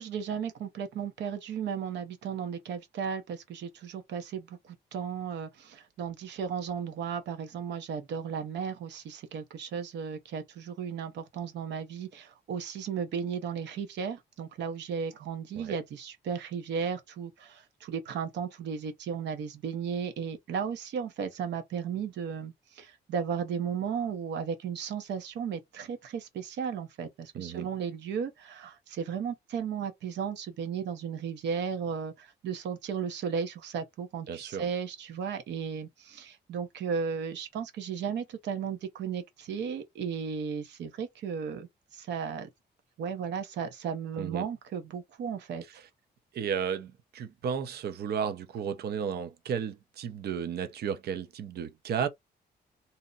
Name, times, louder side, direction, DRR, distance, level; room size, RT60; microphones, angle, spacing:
voice 1, 0.0-41.7 41.9-42.5 43.0-45.6, right 7 dB, 85° right, 0.9 m, -35 dB
voice 2, 27.3-27.7 34.3-34.7 44.2-44.5 46.3-52.1, right 7 dB, 65° right, 0.6 m, -33 dB
2.7 x 2.1 x 3.8 m
cardioid pair, 100°, 18 cm